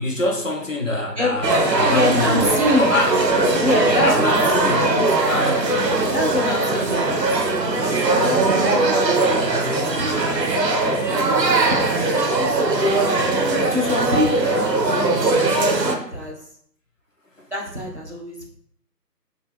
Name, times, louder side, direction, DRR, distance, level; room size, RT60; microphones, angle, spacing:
voice 1, 0.0-2.4 2.8-3.1 4.0-4.9 5.3-5.7 7.8-8.0, left 2 dB, 50° left, 0 dB, 0.6 m, -24 dB
sound 1, 1.4-15.9, right 2 dB, 80° right, 0.7 m, -20 dB
voice 2, 1.9-2.9 3.6-5.4 6.1-10.2 10.9-12.4 12.8-13.2 13.7-15.1 15.6-16.4 17.5-18.4, left 1 dB, 45° right, -2 dB, 0.5 m, -26 dB
3.3 x 2.3 x 3.4 m, 0.68 s
figure-of-eight pair, 170°, 50 cm